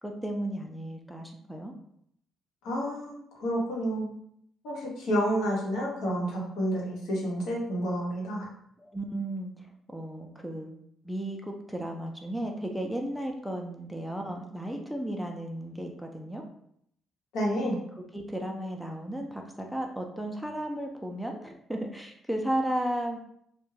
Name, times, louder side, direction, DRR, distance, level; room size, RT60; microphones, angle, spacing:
voice 1, 0.0-1.7 8.8-10.7 11.0-16.4 18.0-23.2, right 1 dB, ahead, 2 dB, 0.3 m, -34 dB
voice 2, 2.6-4.1 4.6-8.5 17.3-17.8, equal, 85° left, -3 dB, 0.9 m, -29 dB
2.3 x 2.1 x 3.1 m, 0.70 s
cardioid pair, 120°, 0 cm